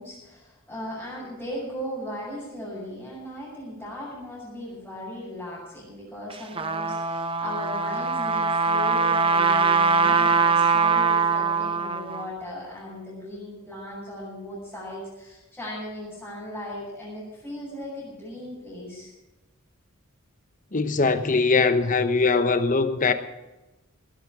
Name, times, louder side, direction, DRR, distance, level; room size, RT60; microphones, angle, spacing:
voice 1, 0.0-19.1, equal, 5° left, 6.9 m, -37 dB
Trumpet, 6.3-12.3, right 5 dB, 25° right, 0.9 m, -22 dB
voice 2, 20.7-23.1, left 4 dB, 40° left, 1.0 m, -21 dB
18.5 x 12.5 x 4.9 m
head